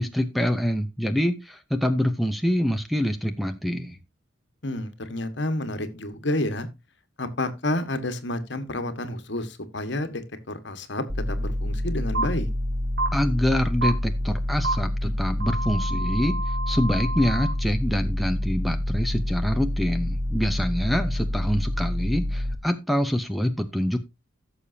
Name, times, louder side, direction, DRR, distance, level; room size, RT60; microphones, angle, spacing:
voice 1, 0.0-4.0 13.1-24.0, equal, ahead, 0.8 m, -25 dB
voice 2, 4.6-6.7 7.2-10.2 10.5-12.5, left 1 dB, 60° left, 1.6 m, -30 dB
sound 1, 11.1-22.6, left 1 dB, 15° right, 1.1 m, -27 dB
sound 2, 12.1-12.2 13.0-13.1 13.8-13.9 14.6-14.7 15.4-17.5, right 2 dB, 60° right, 3.4 m, -29 dB
16.5 x 7.0 x 2.8 m
head